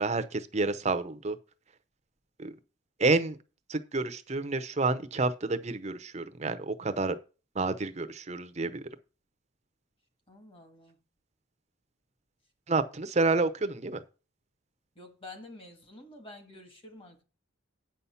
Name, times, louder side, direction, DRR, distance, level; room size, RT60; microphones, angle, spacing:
voice 1, 0.0-1.4 2.4-2.5 3.0-3.4 3.7-7.1 7.6-8.9 12.7-14.0, right 3 dB, 35° right, 0.7 m, -29 dB
voice 2, 10.3-11.0 14.9-17.2, left 2 dB, 25° left, 1.6 m, -49 dB
8.9 x 5.7 x 5.6 m
head